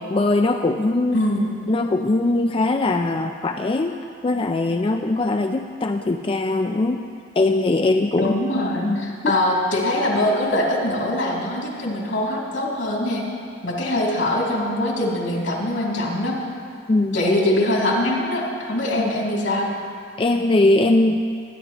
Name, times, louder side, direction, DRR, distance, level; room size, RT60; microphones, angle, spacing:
voice 1, 0.1-1.2 1.7-3.9 4.2-7.0 7.4-8.3 8.8-9.4 16.9-17.2 19.0-19.1 20.2-21.2, left 2 dB, 30° left, 5 dB, 0.4 m, -21 dB
voice 2, 1.1-1.5 8.1-13.2 13.6-16.4 17.1-19.7, left 1 dB, 80° left, -3 dB, 2.8 m, -22 dB
21.5 x 10.5 x 3.0 m, 2.3 s
head